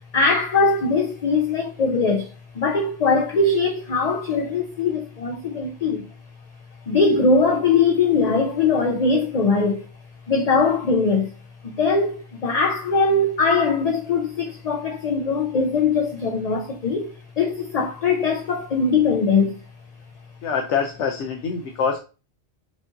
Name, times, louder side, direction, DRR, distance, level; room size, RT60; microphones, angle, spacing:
voice 1, 0.1-6.1 6.9-9.9 10.3-11.3 11.6-19.6, left 4 dB, 45° left, 0.5 m, -21 dB
voice 2, 20.4-22.0, left 6 dB, 85° left, 1.0 m, -24 dB
5.0 x 2.6 x 3.7 m
omnidirectional pair, 1.2 m